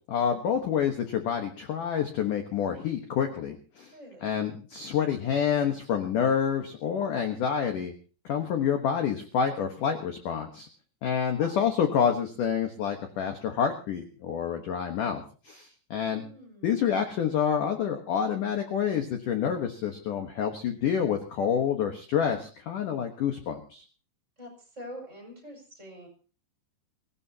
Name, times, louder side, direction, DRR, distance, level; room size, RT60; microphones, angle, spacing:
voice 1, 0.0-3.9 4.2-7.9 8.3-10.7 11.0-16.2 16.6-23.8, left 8 dB, 60° left, 5 dB, 2.3 m, -28 dB
voice 2, 3.9-4.3 11.4-11.5 16.1-16.7 24.4-26.1, equal, 15° right, 0 dB, 5.7 m, -45 dB
24.0 x 17.0 x 2.9 m, 0.39 s
omnidirectional pair, 5.1 m